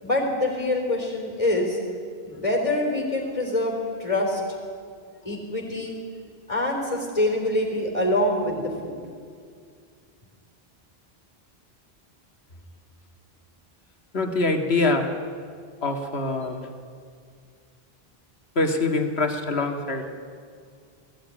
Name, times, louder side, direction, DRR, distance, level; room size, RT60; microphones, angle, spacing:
voice 1, 0.0-1.8 2.3-4.4 5.2-5.9 6.5-9.0, left 1 dB, 30° left, 0 dB, 4.0 m, -25 dB
voice 2, 14.1-15.1 15.8-16.7 18.6-20.1, left 3 dB, 80° left, 4 dB, 2.1 m, -24 dB
20.0 x 15.5 x 10.0 m, 2.1 s
omnidirectional pair, 1.1 m